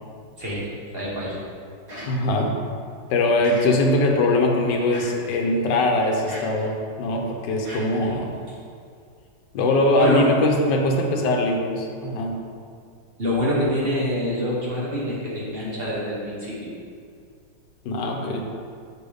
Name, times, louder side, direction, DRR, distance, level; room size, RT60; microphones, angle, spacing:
voice 1, 0.4-1.4 8.0-8.2 10.0-10.3 13.2-16.7, equal, 35° right, -6 dB, 1.3 m, -26 dB
sound 1, 1.9-2.5 3.4-4.1 4.9-5.3 6.3-6.7 7.6-8.5, equal, 55° right, 2.3 m, -39 dB
voice 2, 2.0-2.6 3.1-8.3 9.5-12.4 17.8-18.4, left 2 dB, 75° left, 1 dB, 1.4 m, -21 dB
6.7 x 5.3 x 3.4 m, 2.2 s
omnidirectional pair, 1.9 m